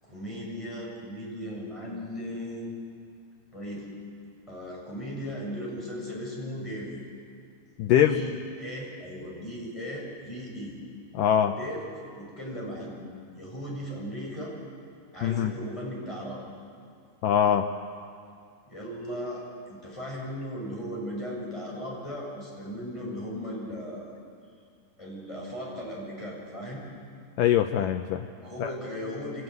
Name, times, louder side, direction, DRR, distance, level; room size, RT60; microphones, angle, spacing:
voice 1, 0.0-2.8 3.5-3.9 4.5-6.9 8.1-10.8 11.5-11.9 12.2-14.6 15.1-16.4 18.7-24.1 25.0-26.8 28.4-29.4, equal, 5° left, -4 dB, 7.4 m, -37 dB
voice 2, 7.8-8.2 11.1-11.6 15.2-15.5 17.2-17.7 27.4-28.3 28.6-28.7, left 10 dB, 85° left, 6 dB, 1.9 m, -22 dB
26.0 x 19.5 x 9.4 m, 2.2 s
omnidirectional pair, 4.7 m